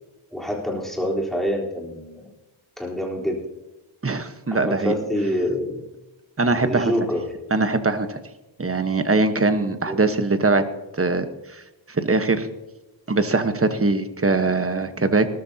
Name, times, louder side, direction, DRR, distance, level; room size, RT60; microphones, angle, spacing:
voice 1, 0.3-2.3 2.8-3.4 4.5-5.8 6.5-7.3 9.8-10.0, equal, ahead, -2 dB, 3.9 m, -26 dB
voice 2, 4.0-4.9 6.4-6.9 7.5-8.2 8.6-10.7 11.0-11.6 11.9-12.5 13.1-15.3, right 3 dB, 25° right, 9 dB, 1.2 m, -22 dB
18.5 x 13.5 x 2.9 m, 1.0 s
wide cardioid pair, 70°, 49 cm